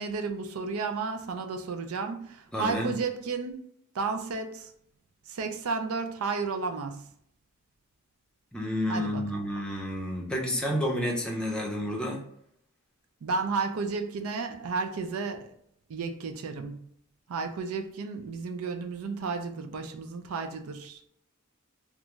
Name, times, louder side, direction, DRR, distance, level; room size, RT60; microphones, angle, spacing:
voice 1, 0.0-3.6 3.9-4.7 5.3-7.0 8.9-9.2 13.2-15.5 15.9-16.8 17.3-21.1, right 4 dB, 85° right, 0.4 m, -32 dB
voice 2, 2.5-2.9 8.5-12.2, equal, 5° left, 0.5 m, -30 dB
2.5 x 2.3 x 3.0 m
head